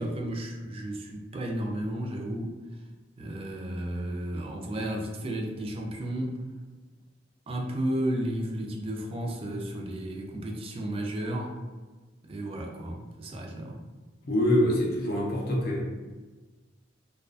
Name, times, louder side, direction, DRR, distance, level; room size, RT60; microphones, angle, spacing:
voice 1, 0.0-2.8 3.2-6.4 7.5-11.6 12.2-13.8, right 1 dB, 30° right, 2 dB, 0.3 m, -33 dB
voice 2, 14.2-15.8, left 1 dB, 55° left, -2 dB, 0.6 m, -25 dB
2.3 x 2.3 x 2.4 m, 1.3 s
head